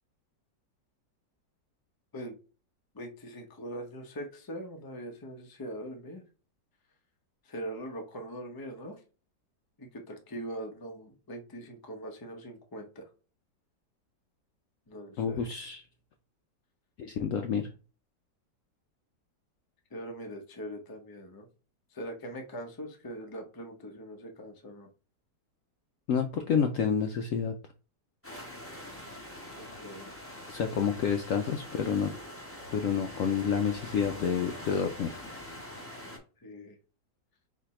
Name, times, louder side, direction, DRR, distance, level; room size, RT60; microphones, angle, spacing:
voice 1, 2.9-6.2 7.4-9.0 9.8-13.1 14.9-15.5 19.9-21.5 21.9-24.9 29.6-30.3 36.4-36.8, right 1 dB, 30° left, 3 dB, 0.4 m, -42 dB
voice 2, 15.2-15.8 17.0-17.7 26.1-27.5 30.5-32.1 32.7-35.2, left 7 dB, 90° left, 5 dB, 0.7 m, -29 dB
sound 1, 28.2-36.2, left 1 dB, 10° left, 1.0 m, -44 dB
4.2 x 2.7 x 4.2 m, 0.35 s
omnidirectional pair, 1.9 m